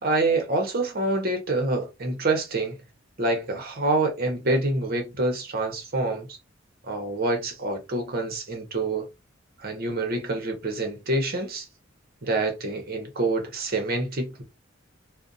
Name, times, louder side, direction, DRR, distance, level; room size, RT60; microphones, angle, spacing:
voice 1, 0.0-2.7 3.2-6.3 6.9-9.1 9.6-11.7 12.2-14.4, right 2 dB, 50° right, 0.8 m, -26 dB
2.5 x 2.1 x 2.5 m
head